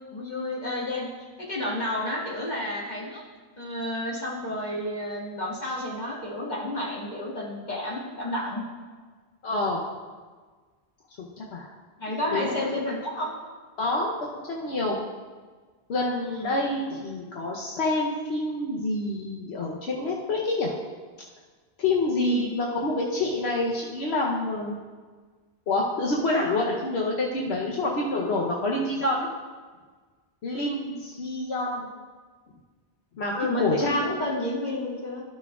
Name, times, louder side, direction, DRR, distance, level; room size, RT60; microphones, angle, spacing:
voice 1, 0.1-1.1 1.4-3.2 3.6-8.6 12.0-13.3 16.2-16.5 22.2-22.5 33.3-35.2, left 1 dB, 45° left, -5 dB, 1.9 m, -31 dB
voice 2, 9.4-9.8 11.2-11.7 12.1-12.6 13.8-15.0 15.9-20.7 21.8-24.8 25.7-29.3 30.4-31.9 33.2-34.1, left 2 dB, 80° left, -2 dB, 1.1 m, -27 dB
13.5 x 5.9 x 2.4 m, 1.4 s
omnidirectional pair, 1.1 m